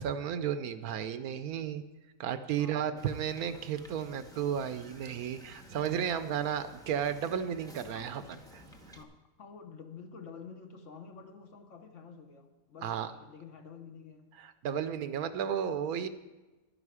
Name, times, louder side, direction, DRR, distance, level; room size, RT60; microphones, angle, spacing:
voice 1, 0.0-1.8 2.2-8.2 8.5-8.6 12.8-13.1 14.4-16.1, right 8 dB, 75° right, 12 dB, 1.1 m, -33 dB
voice 2, 2.6-3.2 7.9-8.2 8.9-14.3, left 5 dB, 55° left, 5 dB, 1.3 m, -49 dB
Wind / Boat Water vehicle, 3.0-9.0, equal, 5° left, 0.7 m, -53 dB
11.5 x 10.5 x 4.8 m, 1.2 s
omnidirectional pair, 1.6 m